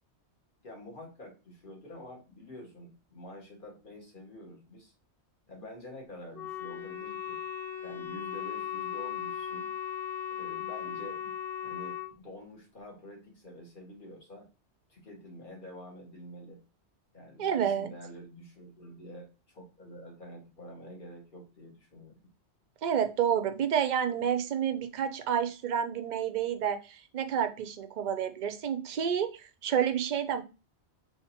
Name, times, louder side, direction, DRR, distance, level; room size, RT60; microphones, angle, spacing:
voice 1, 0.6-4.9 5.5-7.4 7.8-9.7 10.3-11.3 11.6-14.5 14.9-16.6 17.1-22.2, equal, 50° left, -1 dB, 1.4 m, -47 dB
Wind instrument woodwind instrument, 6.3-12.1, left 9 dB, ahead, 1.3 m, -37 dB
voice 2, 17.4-17.9 22.8-30.4, right 8 dB, 60° right, 9 dB, 0.5 m, -29 dB
3.5 x 3.1 x 2.8 m, 0.31 s
omnidirectional pair, 1.2 m